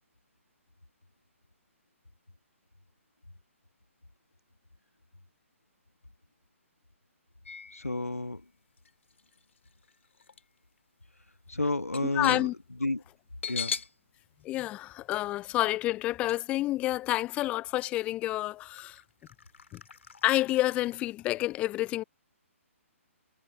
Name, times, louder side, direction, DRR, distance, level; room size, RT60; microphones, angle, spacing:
sound 1, 7.4-8.2 8.8-10.4 10.8-10.9 11.3-14.0 14.3-14.4 16.3-16.4 17.2-17.3 17.9-18.0 18.8-21.0, left 6 dB, 65° left, 2.2 m, -41 dB
voice 1, 7.7-8.5 11.5-12.5 12.8-13.0 13.5-13.8, left 2 dB, 85° left, 1.8 m, -31 dB
voice 2, 12.2-12.5 14.4-19.0 19.7-19.8 20.2-22.0, left 16 dB, 15° left, 0.4 m, -29 dB
figure-of-eight pair, 130°, 8 cm